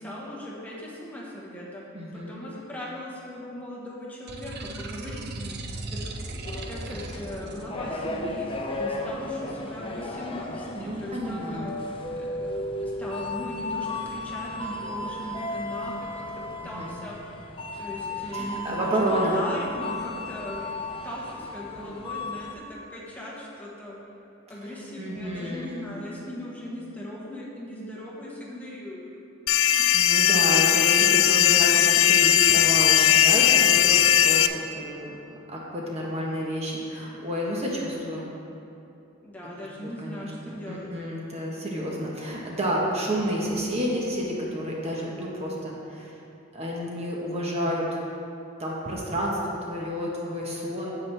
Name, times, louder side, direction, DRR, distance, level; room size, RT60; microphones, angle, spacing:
voice 1, 0.0-1.8 2.1-5.6 5.9-6.0 6.7-12.3 12.7-17.4 17.8-20.7 21.0-23.9 24.5-29.1 39.2-40.9, left 1 dB, 10° left, -6 dB, 1.4 m, -38 dB
voice 2, 1.9-2.3 10.7-11.7 16.6-17.0 18.3-19.4 25.0-25.9 29.5-35.1 35.5-38.3 39.8-46.1 46.5-47.8 48.6-51.0, equal, 30° right, -3 dB, 1.2 m, -30 dB
sound 1, 4.3-7.6, right 2 dB, 55° right, 0.7 m, -37 dB
sound 2, 6.4-22.5, left 2 dB, 25° left, 0.6 m, -34 dB
sound 3, 29.5-34.5, left 11 dB, 75° left, 0.4 m, -19 dB
10.0 x 8.0 x 3.4 m, 2.9 s
head